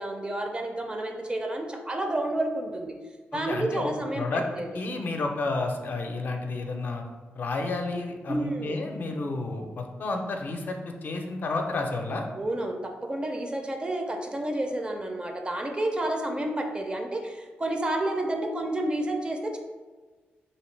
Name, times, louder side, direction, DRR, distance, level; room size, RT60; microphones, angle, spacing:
voice 1, 0.0-2.9 3.3-4.8 8.3-8.8 12.3-19.6, right 1 dB, 25° right, 3 dB, 0.4 m, -30 dB
voice 2, 3.5-3.9 4.2-4.4 4.7-7.0 7.3-12.2, left 3 dB, 50° left, 3 dB, 0.5 m, -31 dB
2.9 x 2.8 x 3.2 m, 1.4 s
cardioid pair, 80°, 4 cm